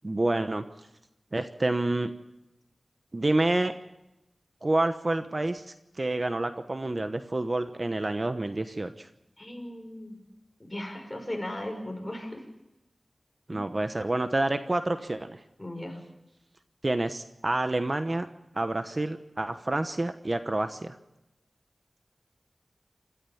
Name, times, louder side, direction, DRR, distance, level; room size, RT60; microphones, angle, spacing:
voice 1, 0.0-0.6 1.3-2.1 3.1-3.7 4.6-9.1 13.5-15.4 16.8-18.3 18.5-21.0, right 2 dB, 40° right, 9 dB, 1.0 m, -28 dB
voice 2, 9.4-10.2 10.6-12.4 13.5-13.7 15.6-16.0, left 1 dB, 20° left, 3 dB, 5.8 m, -37 dB
27.0 x 14.0 x 7.1 m, 0.94 s
wide cardioid pair, 60°, 0 cm